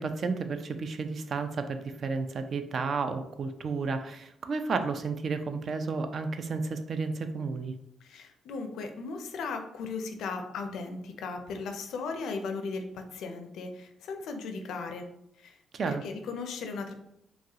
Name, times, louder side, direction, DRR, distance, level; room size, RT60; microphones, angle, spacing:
voice 1, 0.0-7.7 15.7-16.0, right 4 dB, 50° right, 8 dB, 0.3 m, -32 dB
voice 2, 8.0-15.1 15.4-15.6 15.8-16.9, left 4 dB, 75° left, 5 dB, 0.4 m, -37 dB
3.0 x 2.3 x 2.8 m, 0.80 s
cardioid pair, 90°, 0 cm